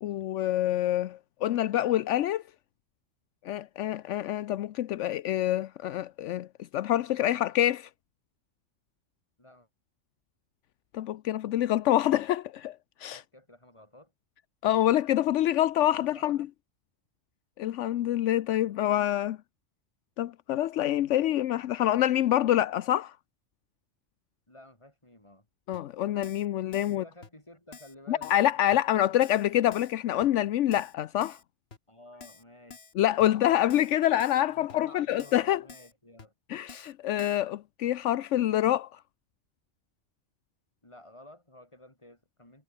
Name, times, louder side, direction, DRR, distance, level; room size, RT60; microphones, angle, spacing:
voice 1, 0.0-2.4 3.4-6.5 6.7-7.9 10.9-12.7 13.0-13.2 14.6-16.4 17.6-19.4 20.2-23.1 25.7-27.0 28.1-31.4 33.0-35.6 36.5-39.0, left 12 dB, 80° left, 0.9 m, -26 dB
voice 2, 13.0-14.1 15.8-16.5 18.6-18.9 24.5-25.5 26.8-28.4 31.9-32.8 33.2-34.0 34.5-36.3 40.8-42.6, left 1 dB, 25° left, 4.8 m, -53 dB
Keyboard (musical), 25.7-25.8 26.2-26.5 26.7-27.0 27.2-27.3 27.7-28.0 28.2-28.5 28.7-28.8 29.2-29.5 29.7-29.9 30.2-30.3 30.7-30.9 31.2-31.4 31.7-31.8 32.2-32.4 32.7-32.9 33.2-33.3 33.7-33.9 34.2-34.4 34.7-34.8 35.2-35.4 35.7-35.9 36.2-36.3 36.7-36.9 37.2-37.4, left 4 dB, 55° left, 2.0 m, -49 dB
omnidirectional pair, 1.2 m